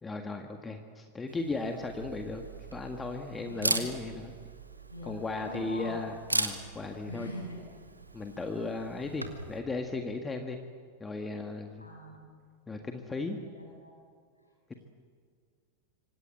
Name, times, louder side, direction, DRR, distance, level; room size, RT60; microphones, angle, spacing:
voice 1, 0.0-4.3 5.0-7.3 8.1-10.6 11.0-11.8 12.7-13.4 14.7-14.8, left 3 dB, 15° left, 4 dB, 1.9 m, -36 dB
Camera, 1.3-9.6, right 2 dB, 80° right, 2.2 m, -38 dB
voice 2, 3.4-3.9 4.9-5.2 5.4-6.0 7.1-7.6 11.8-12.3 13.6-13.9, equal, 85° left, -1 dB, 7.1 m, -41 dB
26.5 x 25.0 x 7.8 m, 2.1 s
figure-of-eight pair, 90°, 0 cm